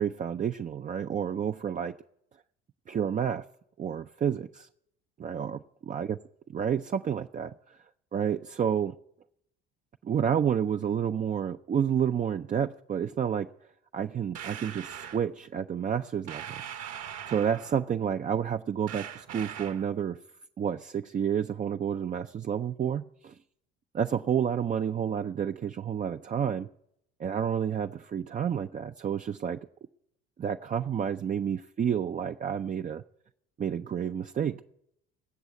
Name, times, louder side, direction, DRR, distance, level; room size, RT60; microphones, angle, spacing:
voice 1, 0.0-1.9 2.9-3.4 3.8-4.7 5.2-6.1 6.5-7.8 8.1-8.9 10.0-13.5 13.9-16.4 17.3-20.2 20.6-23.4 23.9-26.7 27.2-29.6 30.4-33.0 33.6-34.6, right 8 dB, 25° right, 0.4 m, -30 dB
sound 1, 14.3-15.2 16.3-17.9 18.9-19.9, right 9 dB, 55° right, 1.1 m, -41 dB
16.5 x 6.2 x 9.0 m
supercardioid pair, 75°, 30 cm